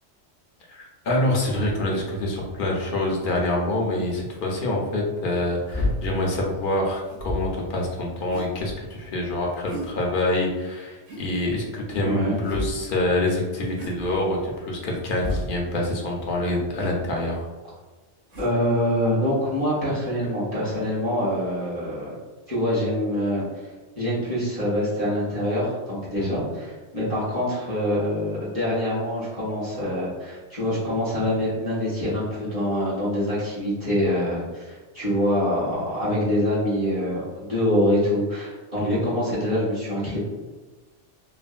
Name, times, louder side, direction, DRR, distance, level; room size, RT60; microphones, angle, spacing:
voice 1, 0.7-17.5 26.2-26.4 38.8-39.0, left 1 dB, 55° left, -1 dB, 0.7 m, -26 dB
sound 1, 3.1-3.2 4.5-4.7 5.7-6.0 7.0-7.7 8.3-8.9 9.7-9.9 11.1-11.3 12.4-12.8 13.8-14.2 15.2-15.5 16.7-16.9 18.3-18.5, left 1 dB, 65° right, 1.0 m, -31 dB
voice 2, 12.0-12.4 18.4-22.2 22.5-23.5 23.9-40.2, equal, 30° right, -10 dB, 1.3 m, -25 dB
3.2 x 2.1 x 2.4 m, 1.3 s
omnidirectional pair, 1.2 m